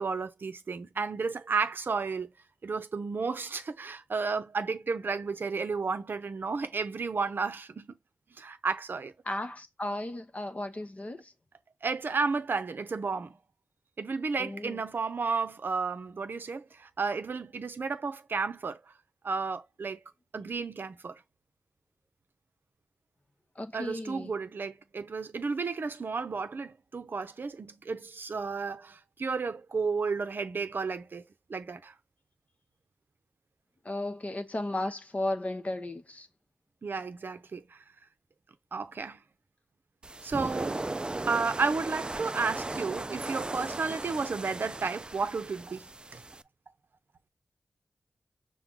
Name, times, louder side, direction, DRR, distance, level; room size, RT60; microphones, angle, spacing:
voice 1, 0.0-2.3 2.6-8.0 8.4-9.1 11.8-13.4 14.0-18.8 19.2-20.0 20.3-21.2 23.7-31.9 36.8-37.8 38.7-39.2 40.2-40.8 41.3-45.9 46.1-46.2, right 4 dB, 65° right, 0.6 m, -32 dB
voice 2, 9.3-11.3 14.4-14.8 23.6-24.3 33.8-36.3, left 1 dB, 40° left, 0.8 m, -35 dB
sound 1, 40.0-46.4, right 2 dB, 25° right, 0.3 m, -37 dB
5.9 x 2.2 x 3.8 m
cardioid pair, 60°, 4 cm